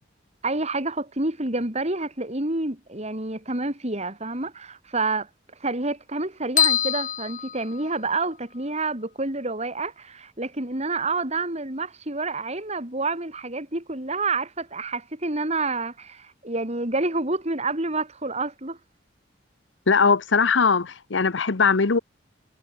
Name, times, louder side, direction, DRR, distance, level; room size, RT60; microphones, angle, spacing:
voice 1, 0.4-5.3 5.6-18.8, right 3 dB, 35° right, 4.7 m, -28 dB
sound 1, 6.6-8.3, left 10 dB, 45° left, 5.5 m, -25 dB
voice 2, 19.9-22.0, left 5 dB, 80° left, 0.9 m, -20 dB
head